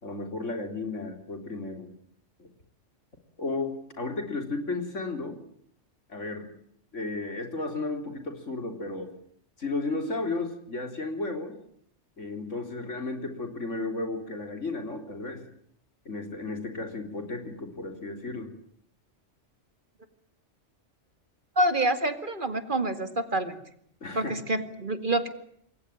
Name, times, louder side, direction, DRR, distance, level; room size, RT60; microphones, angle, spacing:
voice 1, 0.0-1.9 2.4-2.5 3.4-5.4 6.1-6.5 6.9-9.1 9.6-11.6 12.2-15.4 16.1-18.5 24.0-24.3, left 3 dB, 90° left, 5 dB, 4.2 m, -33 dB
voice 2, 21.6-23.6 24.1-25.3, right 1 dB, 45° right, 9 dB, 2.4 m, -27 dB
27.5 x 22.0 x 9.2 m, 0.68 s
omnidirectional pair, 1.2 m